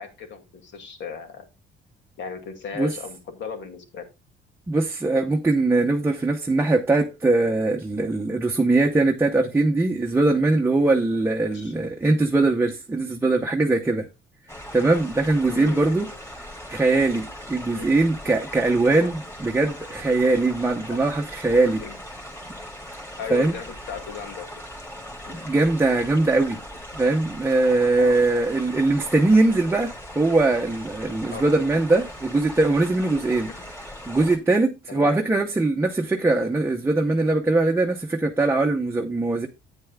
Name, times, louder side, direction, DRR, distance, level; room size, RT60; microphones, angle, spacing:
voice 1, 0.0-1.5 2.2-4.1 11.4-11.7 15.4-15.8 17.7-17.9 19.0-19.1 20.9-21.0 21.8-22.0 23.2-24.5 25.2-25.5 28.0-28.3 31.3-31.5 33.6-33.7 34.9-35.2, left 6 dB, 65° left, 2.4 m, -36 dB
voice 2, 4.7-14.1 14.7-16.1 16.7-21.8 23.3-23.5 25.3-26.6 26.9-33.5 34.1-39.5, right 2 dB, 10° right, 0.8 m, -21 dB
small stream sound track, 14.5-34.4, equal, 10° left, 2.7 m, -39 dB
11.0 x 9.0 x 2.3 m
cardioid pair, 125°, 21 cm